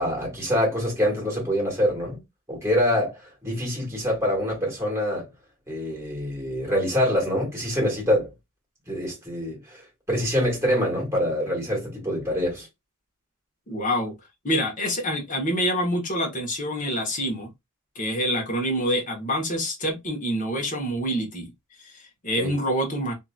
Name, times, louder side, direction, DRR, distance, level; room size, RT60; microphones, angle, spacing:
voice 1, 0.0-2.2 2.5-5.3 5.7-8.3 8.9-12.7 22.4-22.5, equal, 15° right, 1.6 m, -25 dB
voice 2, 13.7-14.1 14.4-17.5 17.9-21.5 21.8-23.1, equal, 40° left, 1.1 m, -26 dB
2.8 x 2.7 x 2.3 m
head